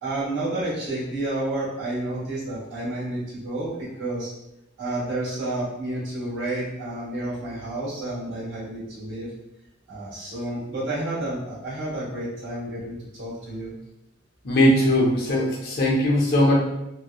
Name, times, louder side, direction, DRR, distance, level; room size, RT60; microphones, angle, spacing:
voice 1, 0.0-4.3 4.8-9.3 9.9-13.7, right 1 dB, 70° right, -7 dB, 1.1 m, -30 dB
voice 2, 14.4-16.5, left 1 dB, 55° left, -3 dB, 0.6 m, -19 dB
2.8 x 2.1 x 2.3 m, 0.89 s
head